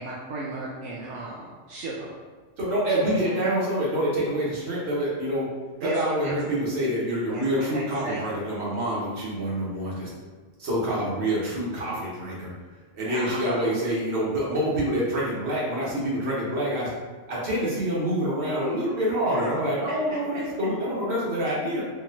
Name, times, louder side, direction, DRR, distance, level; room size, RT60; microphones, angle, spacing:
voice 1, 0.0-2.1 3.0-3.3 5.8-6.3 7.3-8.2 13.0-13.7 19.3-19.4, right 3 dB, 75° right, -5 dB, 0.9 m, -35 dB
voice 2, 2.6-5.5 5.8-10.1 10.6-12.5 12.9-16.9 17.3-21.8, equal, 60° right, -6 dB, 1.4 m, -26 dB
4.0 x 3.0 x 2.7 m, 1.4 s
omnidirectional pair, 1.3 m